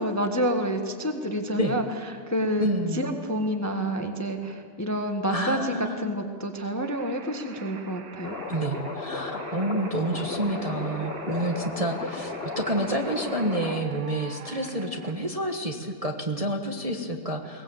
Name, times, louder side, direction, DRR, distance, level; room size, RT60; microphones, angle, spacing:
voice 1, 0.0-1.8 2.3-2.7 2.9-8.4, equal, 10° left, 5 dB, 1.1 m, -28 dB
voice 2, 2.6-3.0 5.3-6.1 8.5-17.6, right 1 dB, 20° right, 2 dB, 1.2 m, -29 dB
sound 1, 6.8-15.1, right 6 dB, 65° right, 1.7 m, -45 dB
sound 2, 8.2-13.8, left 4 dB, 35° left, 1.3 m, -35 dB
22.0 x 19.5 x 8.0 m, 2.1 s
omnidirectional pair, 2.0 m